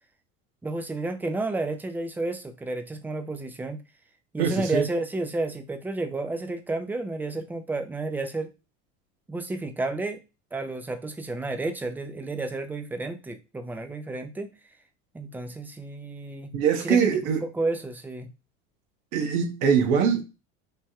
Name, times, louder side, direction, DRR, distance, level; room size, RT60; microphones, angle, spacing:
voice 1, 0.6-3.8 4.3-8.5 9.3-10.2 10.5-14.5 15.1-16.5 16.8-17.1 17.4-18.3, right 2 dB, 5° right, 0.3 m, -31 dB
voice 2, 4.4-4.8 16.5-17.4 19.1-20.2, right 7 dB, 65° right, 1.0 m, -23 dB
3.3 x 2.2 x 2.8 m
hypercardioid pair, 90°, 39 cm